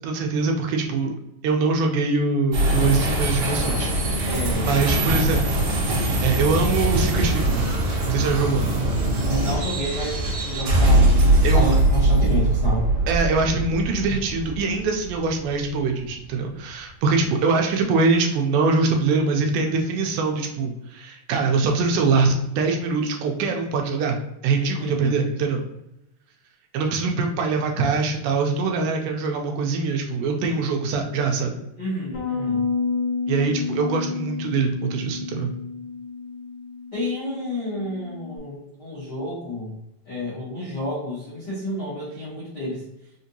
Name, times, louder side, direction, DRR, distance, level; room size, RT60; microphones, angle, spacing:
voice 1, 0.0-1.1 1.4-5.7 6.0-7.7 8.1-8.7 11.4-11.7 13.1-24.2 24.4-25.6 26.7-31.5 33.3-35.5, right 4 dB, 80° right, 3 dB, 2.0 m, -23 dB
sound 1, 2.5-15.9, right 1 dB, 60° right, 1.5 m, -21 dB
voice 2, 4.2-5.4 9.2-12.8 24.6-25.2 31.8-32.6 36.9-39.8 40.0-42.8, left 1 dB, 85° left, -8 dB, 0.9 m, -30 dB
Bass guitar, 32.1-38.4, left 4 dB, 50° left, 2.0 m, -30 dB
5.0 x 2.7 x 2.7 m, 0.85 s
omnidirectional pair, 3.8 m